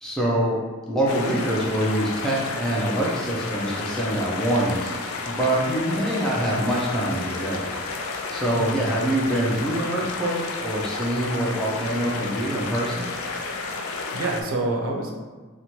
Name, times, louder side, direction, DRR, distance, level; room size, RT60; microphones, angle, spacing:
voice 1, 0.0-0.6 0.9-4.9 5.3-7.7 8.3-13.1, right 1 dB, ahead, -5 dB, 0.4 m, -25 dB
sound 1, 1.1-14.4, left 3 dB, 80° left, 0.3 m, -31 dB
voice 2, 13.8-15.1, right 2 dB, 80° right, 1 dB, 0.5 m, -27 dB
2.9 x 2.1 x 2.7 m, 1.4 s
head